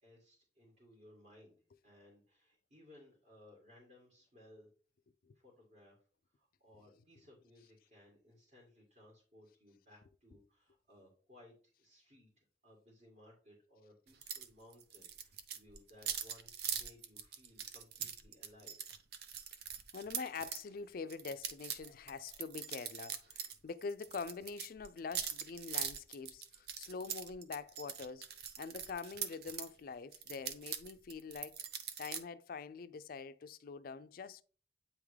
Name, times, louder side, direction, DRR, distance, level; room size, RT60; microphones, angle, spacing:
voice 1, 0.0-4.7 5.3-6.0 6.4-18.8, left 1 dB, 45° right, 2.0 m, -62 dB
sound 1, 14.2-14.5 14.7-20.6 21.1-23.6 23.8-29.7 30.1-32.2, right 8 dB, 60° right, 0.6 m, -42 dB
voice 2, 19.9-31.6 32.0-34.4, left 5 dB, 55° left, 0.4 m, -45 dB
8.6 x 3.6 x 3.3 m
head